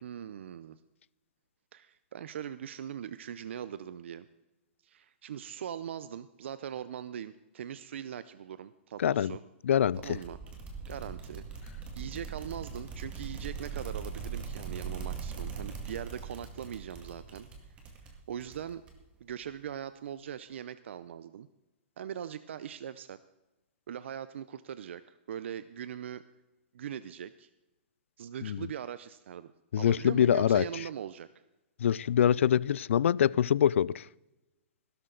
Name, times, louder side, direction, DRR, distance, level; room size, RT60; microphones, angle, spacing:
voice 1, 0.0-0.8 1.7-4.3 4.8-9.4 10.0-10.4 10.9-11.4 11.7-17.5 18.0-18.8 19.2-21.5 22.0-23.2 23.9-26.2 26.7-27.5 28.2-29.5 29.8-31.3, right 9 dB, 70° right, 14 dB, 0.6 m, -41 dB
voice 2, 9.0-9.3 9.6-10.0 28.4-28.7 29.7-30.7 31.8-34.1, left 9 dB, 85° left, 23 dB, 0.3 m, -24 dB
sound 1, 9.9-19.2, right 5 dB, 15° right, 2.1 m, -41 dB
16.5 x 12.5 x 3.9 m, 1.0 s
hypercardioid pair, 160°, 7 cm